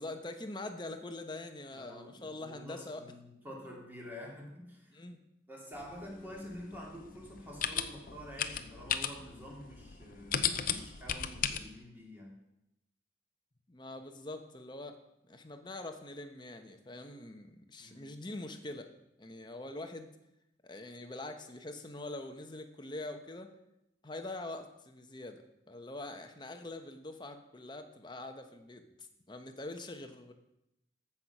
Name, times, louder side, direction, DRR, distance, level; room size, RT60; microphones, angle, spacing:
voice 1, 0.0-3.0 4.9-5.2 13.7-15.0 15.2-18.9 19.2-20.1 20.6-23.5 24.0-25.4 25.7-28.8 29.3-30.3, left 2 dB, 25° left, 6 dB, 1.0 m, -44 dB
voice 2, 1.7-5.0 5.5-12.4 17.8-18.1, equal, 10° right, -2 dB, 2.7 m, -48 dB
sound 1, 5.7-11.6, left 8 dB, 50° left, 0.7 m, -36 dB
14.5 x 5.9 x 6.0 m, 0.85 s
head